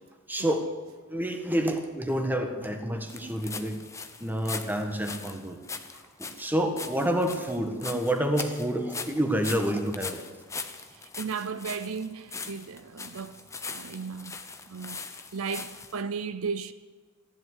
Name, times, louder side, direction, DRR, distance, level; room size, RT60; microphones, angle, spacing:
voice 1, 0.3-0.7 1.1-3.8 4.2-5.6 5.9-10.2, right 1 dB, 10° right, 1.5 m, -28 dB
sound 1, 3.1-16.0, left 4 dB, 15° left, 0.9 m, -40 dB
voice 2, 10.9-14.4 14.7-16.7, right 5 dB, 70° right, 0.6 m, -35 dB
15.0 x 11.5 x 8.2 m
head